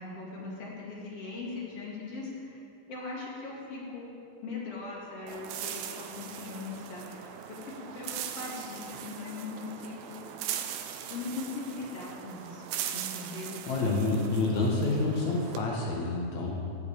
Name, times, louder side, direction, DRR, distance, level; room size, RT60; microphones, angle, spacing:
voice 1, 0.0-2.6 2.9-4.2 4.4-10.3 11.1-12.6 12.9-14.2, left 3 dB, 40° left, -4 dB, 2.4 m, -40 dB
sound 1, 5.3-15.6, right 9 dB, 80° right, 3.0 m, -40 dB
voice 2, 13.7-16.5, left 3 dB, 90° left, -3 dB, 1.6 m, -28 dB
15.5 x 5.2 x 8.8 m, 2.7 s
omnidirectional pair, 5.6 m